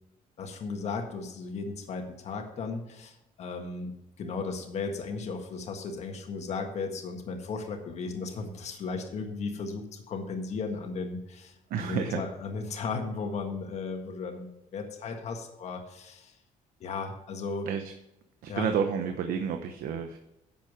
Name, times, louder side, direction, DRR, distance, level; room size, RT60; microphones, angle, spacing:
voice 1, 0.4-3.9 4.2-16.3 16.8-17.7 18.5-18.7, left 4 dB, 50° left, 3 dB, 1.6 m, -35 dB
voice 2, 11.7-12.2 17.7-17.9 18.4-20.2, right 7 dB, 90° right, 6 dB, 1.0 m, -30 dB
11.0 x 7.4 x 4.9 m, 0.90 s
cardioid pair, 155°, 14 cm